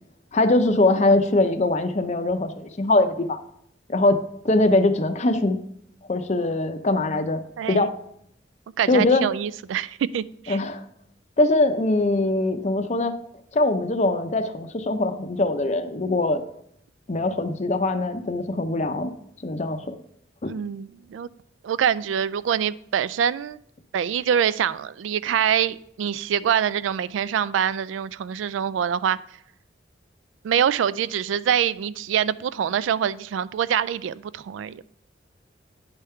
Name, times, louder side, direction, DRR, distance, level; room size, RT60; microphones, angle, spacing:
voice 1, 0.3-3.4 3.9-5.6 6.1-7.4 7.7-7.9 8.9-9.3 10.5-10.8 11.4-13.1 13.5-16.4 17.1-19.1 19.4-19.9 20.4-20.5, left 2 dB, 35° left, 8 dB, 0.5 m, -22 dB
voice 2, 7.6-7.9 8.8-10.6 20.4-21.3 21.6-23.6 23.9-29.2 30.4-34.8, right 8 dB, 85° right, 18 dB, 0.3 m, -25 dB
9.6 x 3.5 x 5.5 m, 0.72 s
head